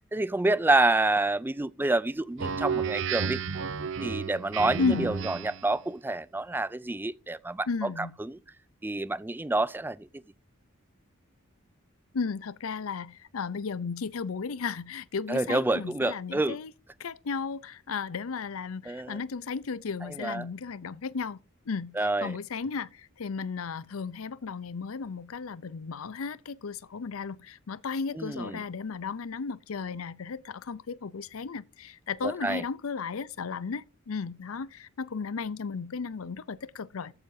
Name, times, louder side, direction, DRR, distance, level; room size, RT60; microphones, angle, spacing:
voice 1, 0.1-3.4 4.0-8.4 8.8-10.1 15.3-16.6 18.8-19.2 20.0-20.5 21.9-22.4 28.1-28.6 32.2-32.6, right 2 dB, 10° right, 0.4 m, -28 dB
Speech synthesizer, 2.4-5.7, right 6 dB, 60° right, 0.8 m, -32 dB
voice 2, 7.7-8.1 12.1-16.7 17.0-21.4 21.7-22.9 23.2-37.1, left 5 dB, 80° left, 0.6 m, -34 dB
14.0 x 8.0 x 2.7 m
head